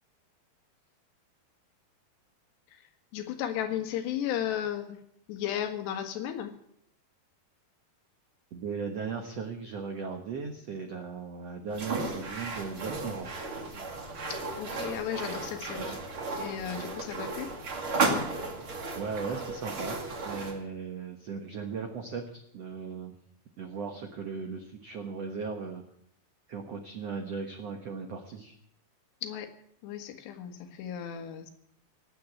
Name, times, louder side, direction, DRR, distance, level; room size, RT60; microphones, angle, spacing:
voice 1, 3.1-5.0 5.3-6.5 14.3-16.0 16.4-17.5 29.2-29.5 29.8-31.5, left 10 dB, 85° left, 7 dB, 3.7 m, -34 dB
voice 2, 8.5-13.3 18.9-20.0 20.2-23.1 23.6-25.8 26.5-28.5, right 5 dB, 65° right, 4 dB, 1.6 m, -37 dB
sound 1, 11.7-20.6, right 3 dB, 40° right, 2.6 m, -34 dB
19.0 x 8.5 x 8.5 m, 0.70 s
omnidirectional pair, 4.8 m